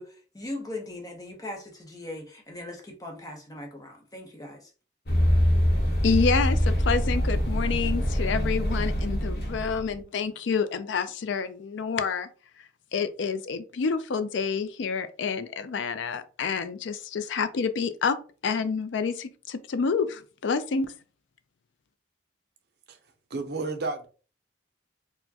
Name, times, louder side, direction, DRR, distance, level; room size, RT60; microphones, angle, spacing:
voice 1, 0.0-4.7, left 1 dB, 20° left, 0.7 m, -39 dB
sound 1, 5.1-9.9, equal, 55° left, 0.9 m, -24 dB
voice 2, 6.0-12.3 12.9-18.2 18.4-20.9, left 5 dB, 75° left, 0.4 m, -28 dB
voice 3, 23.3-24.1, right 3 dB, 55° right, 0.5 m, -31 dB
4.3 x 2.1 x 2.7 m
head